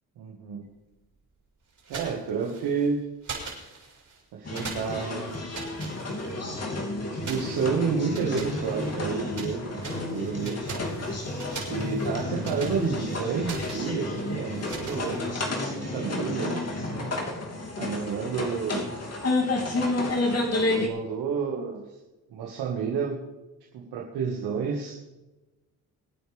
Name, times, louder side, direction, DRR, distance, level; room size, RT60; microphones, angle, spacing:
voice 1, 0.2-0.7 1.9-3.0 4.3-5.4 6.4-6.6 7.3-10.7 11.7-15.4 15.6-16.7 17.8-18.9 20.7-21.8 22.3-23.2 23.7-24.9, right 6 dB, 85° right, -3 dB, 2.1 m, -30 dB
sound 1, 1.8-2.9 3.2-4.2 4.5-6.6 7.2-9.5 9.8-15.6, right 4 dB, 50° right, 6.0 m, -42 dB
sound 2, 4.4-20.9, left 2 dB, 40° left, 3.0 m, -30 dB
24.0 x 9.3 x 3.6 m, 1.0 s
supercardioid pair, 50°, 38 cm